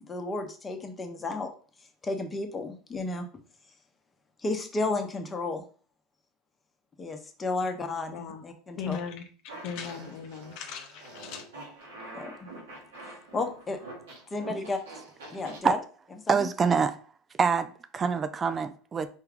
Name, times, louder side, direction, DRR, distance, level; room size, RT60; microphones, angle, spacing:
voice 1, 0.0-1.5 2.0-3.3 4.4-5.6 7.0-9.0 12.1-12.5 13.3-13.8 14.3-14.8 15.3-15.8 16.3-16.5, left 3 dB, 20° left, 0.9 m, -32 dB
voice 2, 8.1-8.4 8.8-9.2 9.6-11.4, left 6 dB, 65° left, 0.6 m, -37 dB
Fart, 9.5-15.6, right 2 dB, 90° right, 1.4 m, -46 dB
voice 3, 16.3-17.0 17.4-17.7 17.9-19.1, right 5 dB, 30° right, 0.3 m, -25 dB
4.5 x 2.3 x 3.5 m
hypercardioid pair, 90°, 0 cm